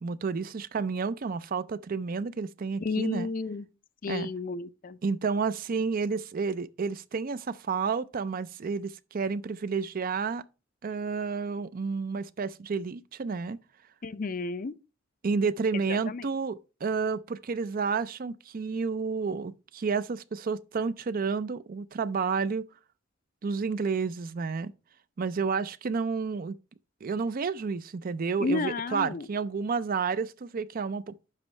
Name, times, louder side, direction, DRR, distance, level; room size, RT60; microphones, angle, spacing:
voice 1, 0.0-3.3 4.1-4.3 5.0-10.4 10.8-13.6 15.2-22.7 23.4-24.7 25.2-26.6 27.0-31.2, right 5 dB, 45° right, 0.4 m, -30 dB
voice 2, 2.8-3.7 4.0-5.0 14.0-14.7 15.7-16.3 28.4-29.3, left 3 dB, 45° left, 0.5 m, -32 dB
9.8 x 6.1 x 3.2 m
head